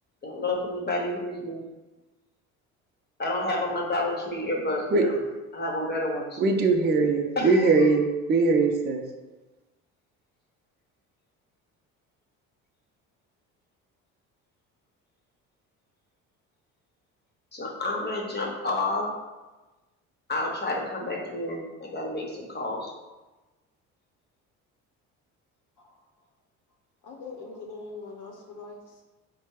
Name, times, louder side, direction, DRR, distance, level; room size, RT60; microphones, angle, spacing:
voice 1, 0.2-1.6 3.2-5.2 5.5-6.4 7.4-7.9 17.5-19.1 20.3-22.9, left 2 dB, 30° left, 0 dB, 1.2 m, -30 dB
voice 2, 6.4-9.0, right 3 dB, 30° right, 3 dB, 0.5 m, -21 dB
voice 3, 27.0-29.0, left 3 dB, 60° left, 0 dB, 0.8 m, -42 dB
4.3 x 2.2 x 4.6 m, 1.2 s
supercardioid pair, 75°, 35 cm